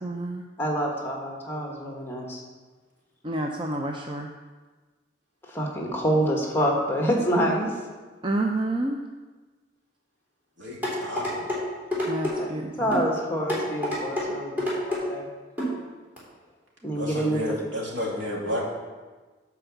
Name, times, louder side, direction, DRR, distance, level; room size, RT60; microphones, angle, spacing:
voice 1, 0.0-0.4 3.2-4.3 8.2-9.0 12.1-13.0, right 1 dB, 25° right, 2 dB, 0.5 m, -29 dB
voice 2, 0.6-2.4 5.5-7.7 12.4-12.5 12.8-15.2 16.8-17.4, equal, 15° left, -1 dB, 1.4 m, -26 dB
voice 3, 10.6-11.5 16.9-18.6, left 1 dB, 85° right, -3 dB, 2.6 m, -31 dB
sound 1, 10.8-11.6 11.9-12.3 12.9-13.1 13.5-14.3 14.6-15.0 15.6-15.7 16.2-16.3, left 1 dB, 10° right, 3.2 m, -27 dB
8.8 x 4.8 x 7.1 m, 1.3 s
head